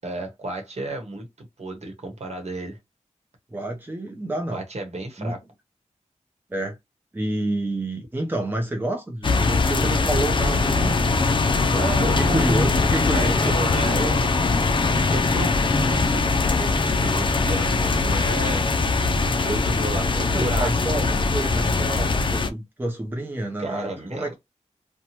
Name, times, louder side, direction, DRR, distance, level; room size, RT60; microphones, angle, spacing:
voice 1, 0.0-2.8 4.5-5.4 11.7-12.5 13.1-14.3 15.0-16.1 16.6-18.7 19.4-20.8 23.6-24.3, right 2 dB, 60° right, 1.0 m, -32 dB
voice 2, 3.5-4.6 5.2-5.4 6.5-6.8 7.1-11.0 12.2-13.4 20.3-24.3, right 1 dB, 15° right, 0.6 m, -29 dB
sound 1, 9.2-22.5, left 3 dB, 40° left, 0.4 m, -21 dB
2.8 x 2.2 x 2.9 m
wide cardioid pair, 65°, 13 cm